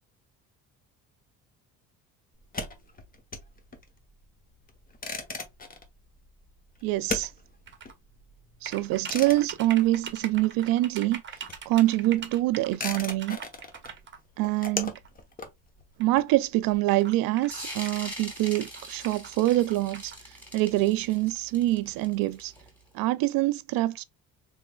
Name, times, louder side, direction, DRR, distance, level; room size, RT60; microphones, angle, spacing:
sound 1, 2.4-10.7 11.0-16.8, left 3 dB, 25° left, 0.9 m, -39 dB
voice 1, 6.8-7.3 8.6-11.2 11.7-13.4 14.4-15.0 16.0-22.5 22.9-24.0, right 16 dB, 70° right, 0.5 m, -25 dB
sound 2, 7.7-7.9 8.7-14.2 15.0-15.1 16.0-16.1 16.3-16.4 16.8-18.2 18.5-20.2, right 7 dB, 30° right, 0.8 m, -42 dB
sound 3, 17.5-22.8, equal, 5° left, 2.0 m, -42 dB
3.5 x 3.0 x 2.2 m
cardioid pair, 90°, 36 cm